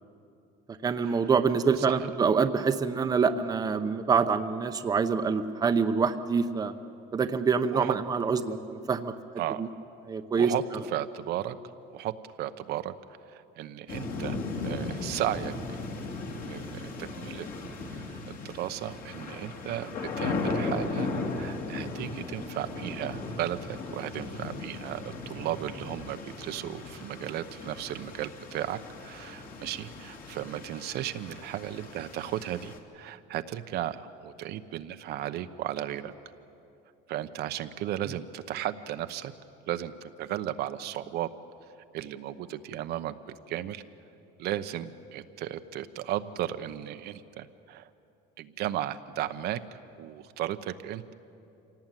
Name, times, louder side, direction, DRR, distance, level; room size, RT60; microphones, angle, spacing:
voice 1, 0.8-6.7 7.1-9.1 9.6-9.7 10.1-10.5, right 5 dB, 20° right, 8 dB, 0.8 m, -26 dB
voice 2, 1.8-2.1 7.7-8.0 9.4-9.6 10.3-10.6 10.9-11.6 11.9-12.1 12.4-12.9 13.3-14.4 14.6-15.5 16.4-17.5 17.9-36.1 37.1-39.3 39.7-41.3 41.9-43.8 44.4-47.9 48.4-51.1, right 12 dB, 60° right, 10 dB, 0.9 m, -35 dB
sound 1, 13.9-32.8, left 3 dB, 50° left, 2.6 m, -37 dB
26.0 x 17.5 x 9.1 m, 2.8 s
cardioid pair, 150°, 19 cm